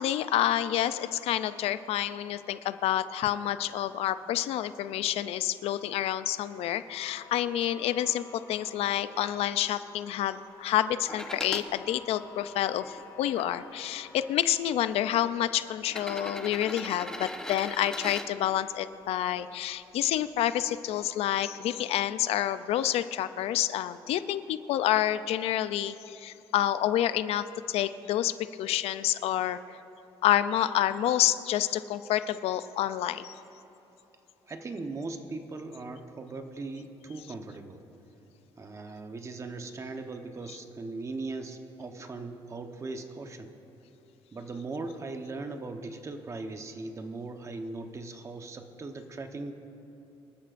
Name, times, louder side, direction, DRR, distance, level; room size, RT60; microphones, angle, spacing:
voice 1, 0.0-28.3 28.6-29.6 30.2-33.3, left 12 dB, 75° left, 13 dB, 0.5 m, -28 dB
sound 1, 6.9-14.6, left 7 dB, 25° left, 1.9 m, -52 dB
sound 2, 11.1-11.7 12.4-13.4 14.4-14.5 15.8-18.3 20.2-20.3, left 1 dB, 5° left, 0.8 m, -39 dB
voice 2, 34.4-37.8 38.6-43.5 44.3-49.5, right 3 dB, 30° right, 6 dB, 1.0 m, -39 dB
25.5 x 13.0 x 2.6 m, 3.0 s
cardioid pair, 115°, 10 cm